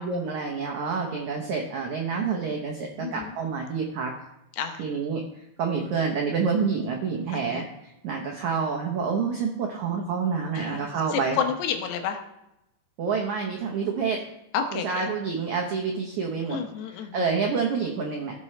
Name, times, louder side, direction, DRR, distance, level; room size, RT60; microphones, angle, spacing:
voice 1, 0.0-4.1 4.8-5.2 5.6-7.6 8.0-11.4 13.0-14.2 14.7-16.6 17.1-18.3, right 5 dB, 90° right, 1 dB, 1.6 m, -28 dB
voice 2, 3.0-3.3 4.6-4.8 7.3-7.6 10.6-12.2 14.5-15.0 16.5-17.3, left 7 dB, 80° left, 5 dB, 3.1 m, -30 dB
16.5 x 6.1 x 3.2 m, 0.86 s
omnidirectional pair, 4.9 m